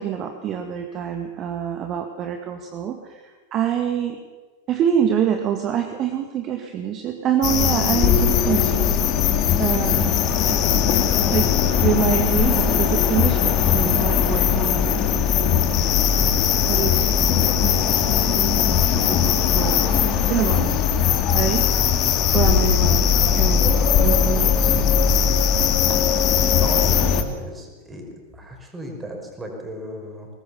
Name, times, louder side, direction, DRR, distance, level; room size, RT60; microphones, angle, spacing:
voice 1, 0.0-3.2 3.5-4.2 4.7-8.9 9.6-10.2 10.5-10.9 11.3-15.2 16.7-20.8 21.3-21.6 22.3-23.1 23.3-23.6 24.0-24.8 25.9-26.0, right 9 dB, 30° right, 5 dB, 1.9 m, -26 dB
sound 1, 7.4-27.2, left 8 dB, 35° left, 2.1 m, -19 dB
voice 2, 26.6-28.0 28.3-30.3, equal, 15° right, 2 dB, 5.5 m, -35 dB
22.5 x 19.5 x 7.1 m, 1.3 s
figure-of-eight pair, 90°, 0 cm